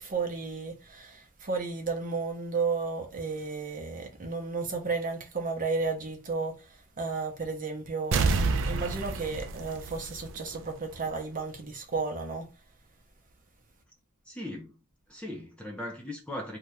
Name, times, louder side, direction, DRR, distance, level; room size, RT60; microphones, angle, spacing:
voice 1, 0.0-12.5, right 4 dB, 40° right, 0.7 m, -33 dB
sound 1, 8.1-10.7 11.1-11.2, right 4 dB, 60° right, 0.4 m, -28 dB
voice 2, 14.3-14.8 15.1-16.6, left 1 dB, 5° left, 0.4 m, -38 dB
2.7 x 2.4 x 3.2 m
head